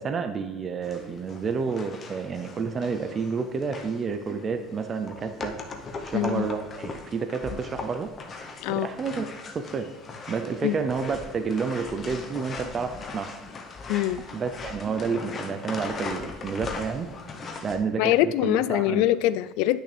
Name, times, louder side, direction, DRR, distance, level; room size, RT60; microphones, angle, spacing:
voice 1, 0.0-5.6 6.0-8.1 8.7-9.3 9.5-9.9 10.3-13.3 14.3-17.1 17.6-19.1, right 5 dB, 30° right, 7 dB, 0.5 m, -30 dB
sound 1, 0.8-17.8, left 4 dB, 30° left, 0.9 m, -39 dB
voice 2, 6.1-6.5 7.5-7.6 8.6-8.9 10.6-10.8 13.9-14.2 18.0-19.8, left 14 dB, 75° left, 16 dB, 0.4 m, -24 dB
10.5 x 6.2 x 3.4 m, 1.1 s
cardioid pair, 145°, 0 cm